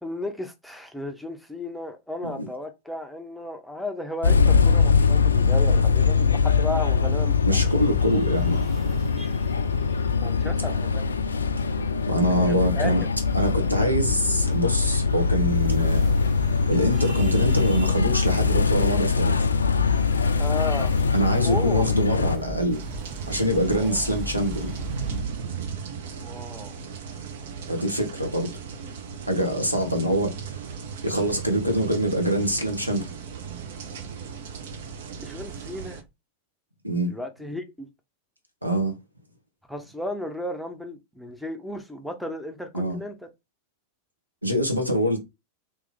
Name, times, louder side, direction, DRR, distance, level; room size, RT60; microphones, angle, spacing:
voice 1, 0.0-7.7 8.1-8.2 10.2-11.0 12.3-13.0 13.7-13.8 20.4-20.9 21.4-21.9 23.7-24.0 26.2-26.8 35.2-36.0 37.1-37.9 39.7-43.2, left 1 dB, ahead, 0.7 m, -34 dB
sound 1, 4.2-22.4, left 5 dB, 75° left, 0.3 m, -22 dB
voice 2, 7.4-8.6 12.1-13.0 13.3-16.1 16.7-19.5 21.1-22.8 23.3-24.7 27.7-28.5 29.3-30.6 31.0-33.1 36.8-37.1 38.6-39.0 42.7-43.0 44.4-45.2, equal, 90° right, 1.0 m, -24 dB
sound 2, 7.6-25.2, right 1 dB, 25° right, 1.8 m, -38 dB
sound 3, 22.7-36.0, right 6 dB, 55° right, 0.7 m, -36 dB
3.3 x 2.9 x 3.5 m
figure-of-eight pair, 90°, 0 cm